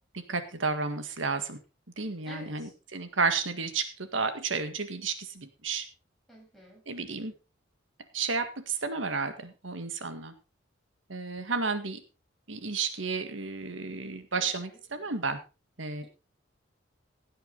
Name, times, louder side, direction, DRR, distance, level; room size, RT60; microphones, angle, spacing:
voice 1, 0.1-1.6 2.0-5.9 6.9-7.3 8.1-10.3 11.1-12.0 12.5-15.4 15.8-16.0, right 4 dB, 80° right, 9 dB, 1.9 m, -32 dB
voice 2, 2.2-2.7 6.3-6.8 14.3-14.8, left 1 dB, ahead, -3 dB, 7.6 m, -49 dB
16.5 x 8.9 x 4.0 m, 0.30 s
head